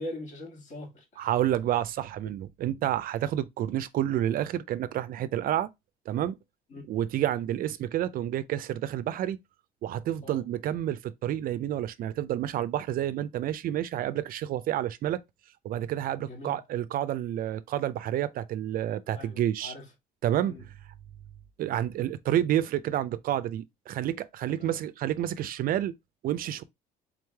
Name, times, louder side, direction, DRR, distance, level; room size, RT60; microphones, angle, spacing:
voice 1, 0.0-1.3 6.7-6.9 10.2-10.4 16.2-16.6 19.1-19.9 20.4-20.6 24.5-24.8, left 1 dB, 45° left, 1.8 m, -42 dB
voice 2, 1.2-5.7 6.1-6.4 6.9-9.4 9.8-15.2 15.6-19.7 20.2-20.7 21.6-25.9 26.2-26.6, right 12 dB, 60° right, 0.4 m, -29 dB
3.9 x 3.1 x 3.3 m
cardioid pair, 110°, 17 cm